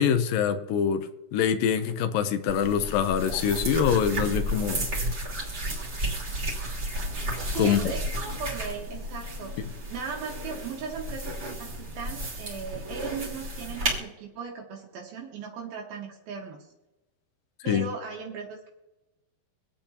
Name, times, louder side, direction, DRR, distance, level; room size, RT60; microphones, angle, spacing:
voice 1, 0.0-4.9 7.6-7.8 17.7-17.8, left 8 dB, 75° left, 9 dB, 2.4 m, -24 dB
sound 1, 2.5-14.0, right 1 dB, 30° right, 3.4 m, -33 dB
voice 2, 7.5-9.6 9.9-16.7 17.6-18.7, right 5 dB, 75° right, -1 dB, 3.2 m, -37 dB
26.0 x 8.7 x 2.9 m, 0.99 s
omnidirectional pair, 4.4 m